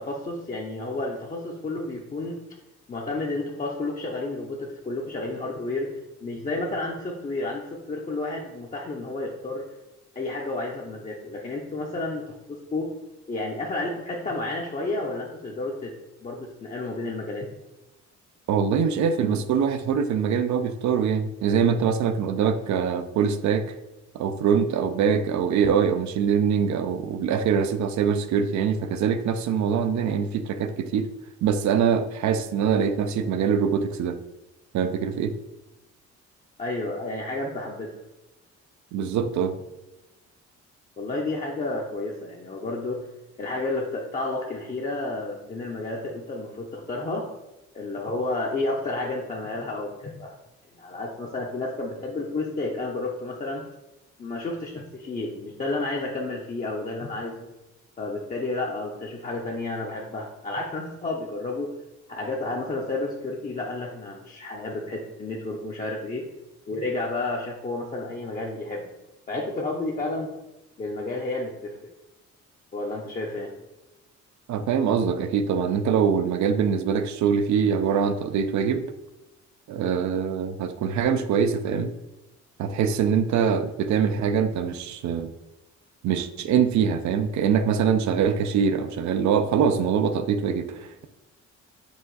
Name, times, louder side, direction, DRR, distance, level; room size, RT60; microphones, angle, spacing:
voice 1, 0.0-2.4 2.9-5.9 6.2-9.6 10.2-12.9 13.3-15.9 16.2-17.5 36.6-37.9 41.0-43.0 43.4-47.2 47.7-50.3 50.8-53.6 54.2-57.5 58.0-61.7 62.1-66.2 66.7-68.9 69.3-70.3 70.8-71.9 72.7-73.5, left 2 dB, 25° left, -2 dB, 0.6 m, -31 dB
voice 2, 18.5-23.7 24.1-31.1 31.4-34.2 34.7-35.3 38.9-39.6 74.5-78.9 79.7-81.9 82.6-85.3 86.0-91.1, right 7 dB, 70° right, 9 dB, 0.5 m, -23 dB
4.8 x 2.5 x 3.9 m, 0.99 s
cardioid pair, 90°, 30 cm